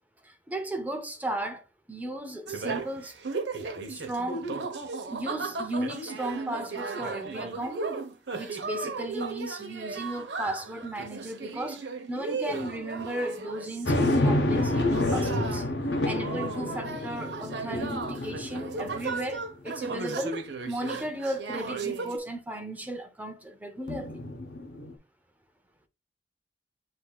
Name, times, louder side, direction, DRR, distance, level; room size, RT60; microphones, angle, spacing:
voice 1, 0.2-1.6 1.9-3.1 3.9-4.5 5.1-7.9 8.3-15.7 16.0-20.4 20.7-24.2, right 1 dB, 10° right, 0.5 m, -35 dB
sound 1, 2.5-22.2, right 4 dB, 85° right, 0.9 m, -36 dB
sound 2, 13.8-19.4 19.9-20.0 23.9-25.0, left 1 dB, 90° left, 0.9 m, -28 dB
7.8 x 2.7 x 2.3 m
head